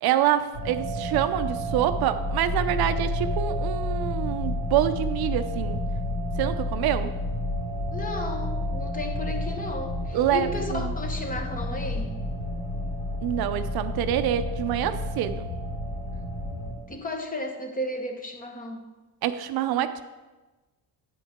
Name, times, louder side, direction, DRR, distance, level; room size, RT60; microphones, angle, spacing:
voice 1, 0.0-5.8 6.4-7.1 10.1-10.9 13.2-15.5 19.2-20.0, right 11 dB, 70° right, 10 dB, 0.6 m, -26 dB
sound 1, 0.5-16.7, left 1 dB, 70° left, 3.5 m, -30 dB
voice 2, 7.9-12.1 16.9-18.9, left 2 dB, 20° left, 4 dB, 1.0 m, -34 dB
9.3 x 8.5 x 3.6 m, 1.2 s
cardioid pair, 155°, 39 cm